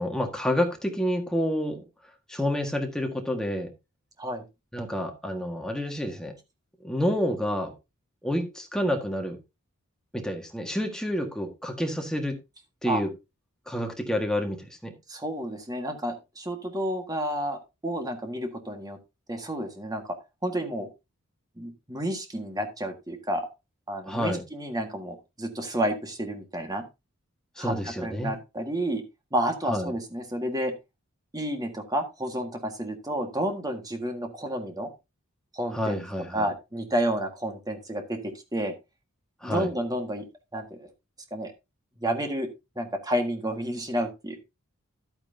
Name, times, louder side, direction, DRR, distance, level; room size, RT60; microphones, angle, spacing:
voice 1, 0.0-1.8 2.3-3.7 4.7-6.3 6.8-7.7 8.2-9.4 10.1-12.3 12.8-13.1 13.7-14.9 24.1-24.4 27.6-28.3 29.7-29.9 35.7-36.4 39.4-39.7, equal, 5° left, 1.6 m, -28 dB
voice 2, 15.1-19.0 19.3-20.1 20.4-20.9 21.6-23.5 23.9-26.8 27.6-29.0 29.3-30.7 31.3-34.9 35.5-36.0 36.3-38.7 39.4-40.2 40.5-40.9 41.3-41.5 42.0-42.5 42.7-44.4, right 1 dB, 20° right, 1.7 m, -30 dB
11.0 x 8.9 x 2.7 m
head